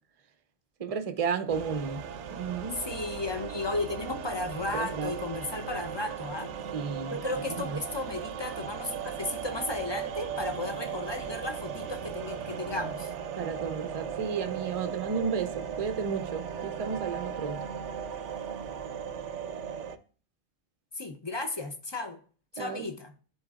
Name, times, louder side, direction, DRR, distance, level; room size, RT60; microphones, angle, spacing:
voice 1, 0.8-2.0 2.3-2.8 4.7-5.1 6.7-7.2 7.7-7.8 13.4-17.6 22.6-22.9, right 6 dB, 40° right, 0.6 m, -32 dB
sound 1, 1.5-20.0, right 7 dB, 70° right, 0.9 m, -37 dB
voice 2, 2.7-6.5 7.1-13.1 20.9-22.2 22.5-23.1, left 2 dB, 25° left, 0.6 m, -34 dB
11.0 x 3.9 x 2.4 m
omnidirectional pair, 1.3 m